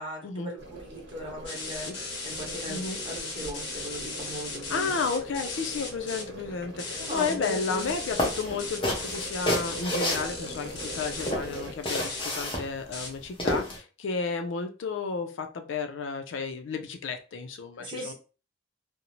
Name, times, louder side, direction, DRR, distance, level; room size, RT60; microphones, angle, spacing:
voice 1, 0.0-5.0 7.0-7.8 17.8-18.1, equal, 25° right, -1 dB, 0.8 m, -39 dB
sound 1, 0.6-11.7, right 1 dB, 65° right, 0.8 m, -43 dB
sound 2, 1.4-6.2 6.8-11.3 11.8-12.4 12.9-13.1, left 3 dB, 60° left, 0.8 m, -37 dB
voice 2, 2.7-3.0 4.7-18.1, left 4 dB, 80° left, 6 dB, 0.4 m, -32 dB
sound 3, 7.8-7.9 8.2-10.8 11.2-13.8, equal, 25° left, 0.6 m, -30 dB
2.5 x 2.0 x 2.9 m, 0.34 s
head